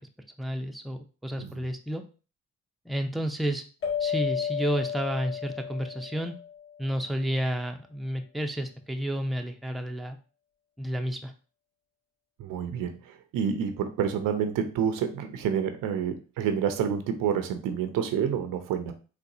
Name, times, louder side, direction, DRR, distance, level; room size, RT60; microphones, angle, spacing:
voice 1, 0.4-2.0 2.9-3.7 4.0-6.3 6.8-10.2 10.8-11.3, equal, ahead, 5 dB, 0.5 m, -31 dB
sound 1, 3.8-6.8, left 8 dB, 40° left, 1.4 m, -32 dB
voice 2, 12.4-18.9, right 8 dB, 85° right, 8 dB, 0.6 m, -28 dB
4.0 x 2.2 x 2.7 m, 0.35 s
supercardioid pair, 55°, 32 cm